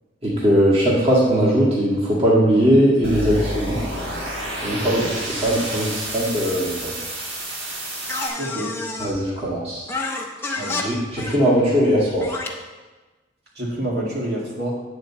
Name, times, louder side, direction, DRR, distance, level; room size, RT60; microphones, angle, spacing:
voice 1, 0.2-3.8 4.6-4.9 5.4-6.9 9.0-9.9 10.8-12.3, equal, 30° right, -7 dB, 1.7 m, -19 dB
sound 1, 3.0-8.3, right 1 dB, 75° right, 2.3 m, -29 dB
voice 2, 4.7-5.1 8.4-8.8 10.6-10.8 13.6-14.7, right 1 dB, 55° right, -4 dB, 2.1 m, -28 dB
sound 2, 8.1-9.1 9.9-10.8 11.2-11.4 12.2-12.5, left 3 dB, 10° left, 0.7 m, -28 dB
9.2 x 4.3 x 7.2 m, 1.2 s
head